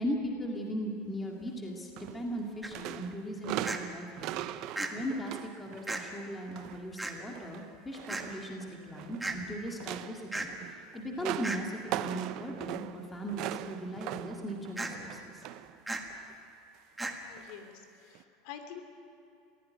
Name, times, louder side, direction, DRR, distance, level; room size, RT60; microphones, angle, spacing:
voice 1, 0.0-4.4 4.9-10.5 10.9-15.4, equal, 10° left, 0 dB, 2.0 m, -38 dB
sound 1, 2.0-2.4 2.7-6.9 7.2-9.3 9.7-15.8 16.1-16.3 17.4-17.5 18.1-18.2, right 13 dB, 50° right, 0.7 m, -40 dB
sound 2, 2.6-2.7 3.6-3.8 4.8-4.9 5.9-6.0 7.0-7.1 8.1-8.2 9.2-9.4 10.3-10.5 11.4-11.6 14.8-14.9 15.9-16.0 17.0-17.1, right 2 dB, 5° right, 1.6 m, -34 dB
voice 2, 17.3-18.8, left 9 dB, 65° left, 6 dB, 3.0 m, -47 dB
21.5 x 16.0 x 9.5 m, 2.7 s
supercardioid pair, 155°, 0 cm